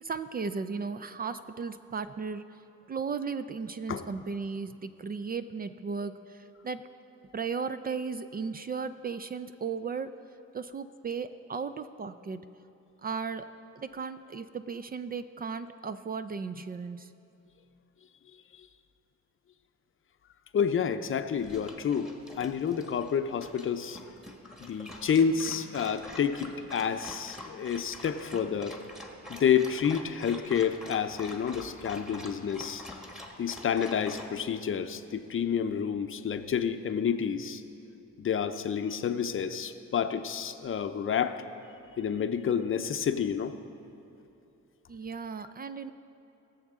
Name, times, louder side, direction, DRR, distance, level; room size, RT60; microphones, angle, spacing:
voice 1, 0.0-2.6 2.9-6.8 7.3-10.1 10.5-12.5 13.0-13.5 13.8-17.1 44.9-45.9, right 5 dB, 30° right, 11 dB, 0.4 m, -36 dB
voice 2, 20.5-24.0 24.6-28.8 29.3-32.8 33.4-37.6 38.2-41.4 42.0-43.5, left 7 dB, 45° left, 8 dB, 0.7 m, -29 dB
Dog, 21.4-34.3, left 1 dB, ahead, 1.5 m, -46 dB
21.0 x 7.2 x 3.7 m, 2.8 s
cardioid pair, 90°, 30 cm